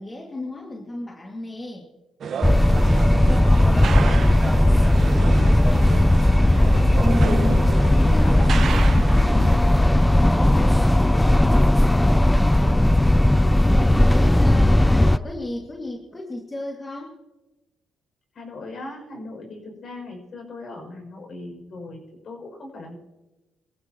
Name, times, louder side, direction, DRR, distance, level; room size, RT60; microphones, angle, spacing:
voice 1, 0.0-1.9 6.0-6.4 7.0-7.6 7.9-9.0 9.3-9.7 10.1-10.7 12.3-12.9 13.4-13.8 14.1-17.2, left 1 dB, 25° left, -1 dB, 2.4 m, -33 dB
sound 1, 2.2-9.6, right 6 dB, 60° right, 1.3 m, -32 dB
sound 2, 2.4-15.2, left 1 dB, 5° left, 0.4 m, -17 dB
voice 2, 3.1-5.4 6.3-7.7 8.0-9.1 10.4-11.6 12.4-12.9 18.3-23.0, left 1 dB, 55° left, 1 dB, 6.9 m, -38 dB
24.5 x 15.0 x 3.1 m, 1.0 s
cardioid pair, 90°, 0 cm